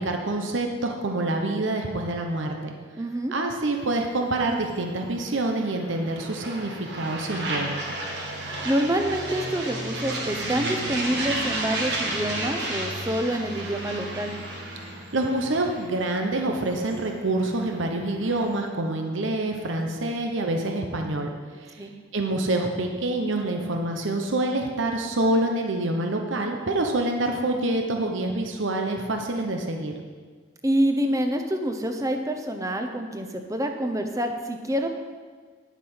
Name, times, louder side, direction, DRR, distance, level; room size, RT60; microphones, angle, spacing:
voice 1, 0.0-2.7 3.3-8.0 14.8-21.3 21.6-29.9, right 2 dB, 80° right, 3 dB, 1.0 m, -27 dB
voice 2, 3.0-3.3 8.6-14.3 21.8-21.9 30.6-34.9, right 1 dB, 15° right, 5 dB, 0.8 m, -27 dB
sound 1, 3.8-18.6, right 1 dB, 60° right, 1.8 m, -33 dB
10.5 x 7.3 x 5.7 m, 1.5 s
head